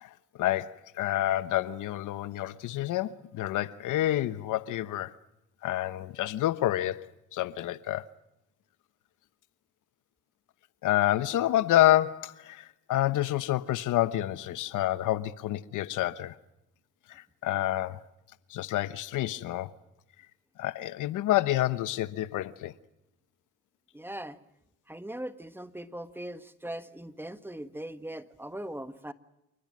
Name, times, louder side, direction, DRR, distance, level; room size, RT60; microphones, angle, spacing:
voice 1, 0.0-5.1 5.6-8.1 10.8-16.4 17.1-18.0 18.5-19.7 20.6-22.7, left 14 dB, 85° left, 1.1 m, -28 dB
voice 2, 23.9-24.4 24.9-29.1, right 1 dB, 5° right, 1.5 m, -40 dB
28.0 x 20.0 x 7.6 m
cardioid pair, 90°, 30 cm